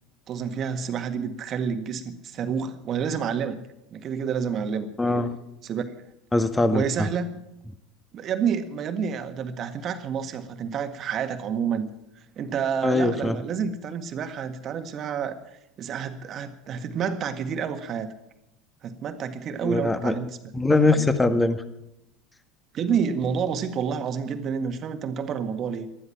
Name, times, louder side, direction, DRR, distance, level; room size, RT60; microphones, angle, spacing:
voice 1, 0.3-3.6 3.9-4.9 5.6-5.8 6.7-7.4 8.1-11.9 12.4-15.4 15.8-18.1 18.8-20.3 22.7-25.9, right 7 dB, 40° right, 8 dB, 1.7 m, -29 dB
voice 2, 5.0-5.4 6.3-7.1 12.8-13.4 19.6-20.2 20.5-21.6, left 2 dB, 10° left, 9 dB, 1.6 m, -22 dB
19.5 x 12.5 x 5.8 m, 0.85 s
hypercardioid pair, 75°, 0 cm